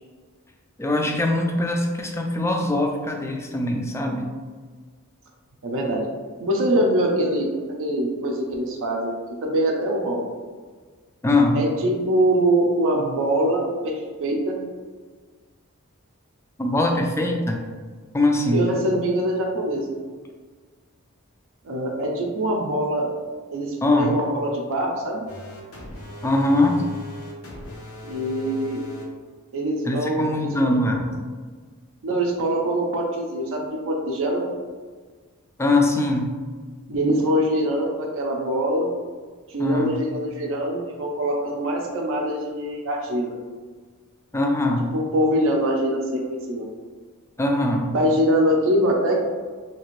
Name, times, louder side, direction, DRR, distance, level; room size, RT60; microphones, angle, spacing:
voice 1, 0.8-4.3 11.2-11.6 16.6-17.6 18.1-18.7 23.8-24.1 26.2-26.8 29.8-31.2 35.6-36.3 39.6-40.0 44.3-44.9 47.4-47.9, left 2 dB, 10° left, 2 dB, 0.3 m, -22 dB
voice 2, 5.6-6.1 6.4-7.5 7.8-9.1 9.4-10.2 11.5-14.6 18.5-19.9 21.6-23.1 23.5-25.2 28.0-28.8 29.5-30.5 32.0-34.5 36.9-38.9 39.5-43.3 44.9-46.7 47.9-49.2, right 1 dB, 60° right, 0 dB, 0.5 m, -23 dB
sound 1, 25.3-29.0, left 1 dB, 80° left, 0.8 m, -38 dB
2.8 x 2.5 x 3.0 m, 1.5 s
head